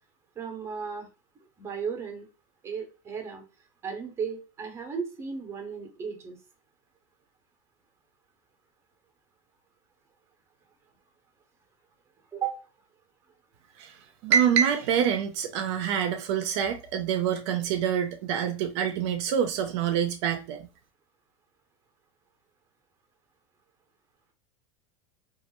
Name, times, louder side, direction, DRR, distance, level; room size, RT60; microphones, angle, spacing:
voice 1, 0.4-1.1 1.6-2.3 2.6-3.4 3.8-6.4 12.3-12.6, right 6 dB, 15° right, 0.6 m, -35 dB
voice 2, 14.2-20.7, right 8 dB, 60° right, 0.4 m, -26 dB
2.2 x 2.0 x 2.9 m
supercardioid pair, 135°, 17 cm